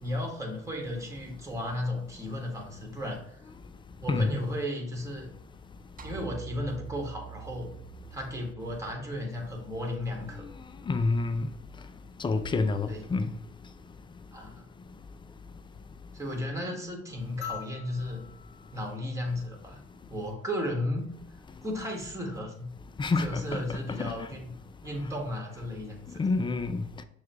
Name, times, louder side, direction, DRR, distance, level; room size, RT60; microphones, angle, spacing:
voice 1, 0.0-3.4 4.0-5.3 6.0-7.7 8.1-10.5 12.9-13.0 14.3-14.6 16.1-18.2 18.7-19.8 20.1-21.1 21.6-22.7 23.2-24.5 24.8-26.3, left 1 dB, 10° right, 1.4 m, -34 dB
sound 1, 6.0-10.4, right 7 dB, 25° right, 0.7 m, -46 dB
voice 2, 10.9-11.5 12.2-13.3 23.0-23.4 23.7-24.1 26.2-26.8, left 3 dB, 15° left, 0.4 m, -27 dB
sound 2, 17.4-20.0 21.6-21.7, left 9 dB, 45° left, 1.0 m, -44 dB
6.2 x 2.3 x 2.9 m
hypercardioid pair, 60°, 31 cm